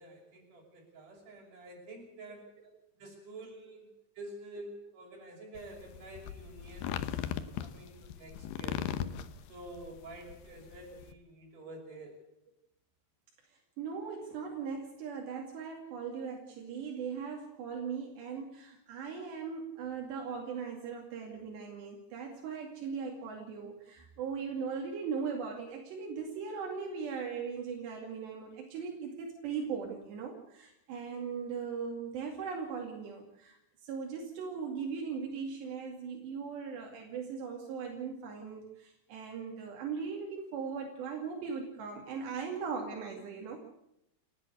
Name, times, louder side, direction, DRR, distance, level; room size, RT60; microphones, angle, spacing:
voice 1, 0.0-2.5 3.0-3.9 4.2-7.2 7.6-8.9 9.5-12.2 34.7-34.9, right 2 dB, 50° right, 0 dB, 7.4 m, -49 dB
sound 1, 5.6-11.1, left 9 dB, 75° left, 3.0 m, -38 dB
voice 2, 13.5-43.6, right 6 dB, 85° right, 0 dB, 4.7 m, -39 dB
29.5 x 11.0 x 8.1 m, 0.79 s
omnidirectional pair, 4.8 m